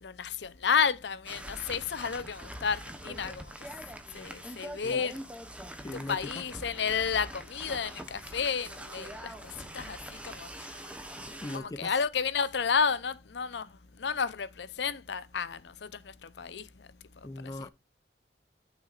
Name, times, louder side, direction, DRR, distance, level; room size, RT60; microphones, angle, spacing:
voice 1, 0.0-3.7 4.1-5.2 5.9-10.9 11.5-16.9 17.4-17.7, left 6 dB, 70° left, 0.6 m, -32 dB
sound 1, 1.2-11.6, right 1 dB, 5° right, 0.9 m, -44 dB
voice 2, 5.8-6.4 11.2-11.9 17.2-17.7, left 2 dB, 20° left, 0.4 m, -40 dB
11.0 x 6.0 x 2.4 m
head